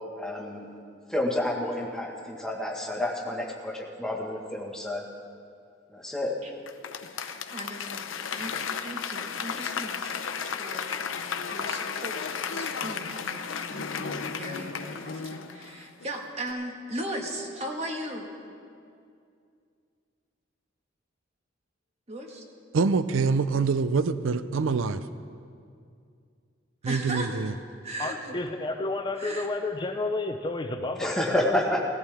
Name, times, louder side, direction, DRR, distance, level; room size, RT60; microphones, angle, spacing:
voice 1, 0.2-0.7 1.1-5.1 5.9-6.4 31.0-31.9, left 1 dB, 5° left, -1 dB, 1.5 m, -29 dB
Applause / Crowd, 6.7-16.1 16.5-16.6, left 6 dB, 90° left, 0.7 m, -34 dB
voice 2, 7.1-8.1 8.3-18.3 22.1-22.4 26.8-27.3 27.8-28.4 29.1-29.5, right 1 dB, 35° right, 1 dB, 1.7 m, -38 dB
voice 3, 22.7-25.1 26.8-27.5, right 4 dB, 85° right, 12 dB, 0.5 m, -25 dB
voice 4, 28.0-31.5, left 2 dB, 25° left, 6 dB, 0.5 m, -31 dB
18.5 x 14.0 x 3.5 m, 2.4 s
head